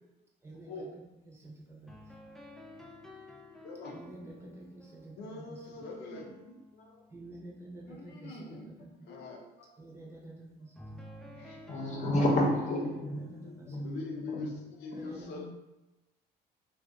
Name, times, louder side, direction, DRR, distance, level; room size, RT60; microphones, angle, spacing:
voice 1, 0.4-2.1 3.9-5.8 7.1-8.9 9.8-11.0 12.0-12.6 12.9-13.9 14.9-15.5, right 2 dB, 15° right, -3 dB, 0.8 m, -49 dB
sound 1, 1.9-7.7 10.8-14.3, left 1 dB, 5° left, 0.3 m, -53 dB
voice 2, 5.2-6.6 7.9-9.7 11.2-11.6 13.2-14.5 14.8-15.5, left 3 dB, 80° left, 1 dB, 0.7 m, -43 dB
voice 3, 6.7-7.1 11.7-13.3 13.7-14.0 14.3-14.5, left 1 dB, 45° left, -2 dB, 0.9 m, -30 dB
2.6 x 2.4 x 3.6 m, 1.0 s
cardioid pair, 110°, 17 cm